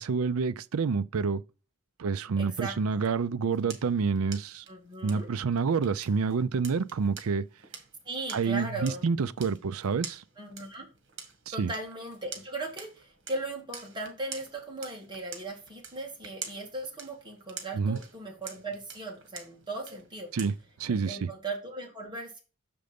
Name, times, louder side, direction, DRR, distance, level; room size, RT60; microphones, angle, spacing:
voice 1, 0.0-1.4 2.0-4.6 5.0-7.4 8.3-10.2 11.5-11.7 17.7-18.0 20.3-20.5 20.8-21.3, right 5 dB, 75° right, 0.5 m, -28 dB
voice 2, 2.4-3.1 4.7-5.3 8.0-9.1 10.4-10.9 11.5-20.3 20.9-22.4, right 2 dB, 20° right, 2.1 m, -38 dB
sound 1, 3.2-20.9, right 6 dB, 55° right, 1.9 m, -48 dB
6.7 x 5.2 x 5.1 m
head